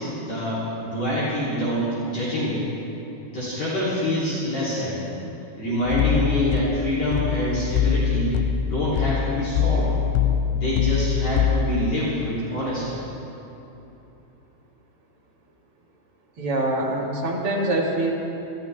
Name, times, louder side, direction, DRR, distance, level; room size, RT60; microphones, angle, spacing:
voice 1, 0.0-2.6 3.3-5.1 5.6-8.3 8.7-9.9 10.5-13.0, left 1 dB, 45° left, -10 dB, 4.2 m, -26 dB
sound 1, 5.9-11.9, left 7 dB, 85° left, 2.6 m, -23 dB
voice 2, 16.4-18.1, right 2 dB, 45° right, -3 dB, 2.3 m, -24 dB
29.0 x 13.5 x 3.5 m, 3.0 s
omnidirectional pair, 4.5 m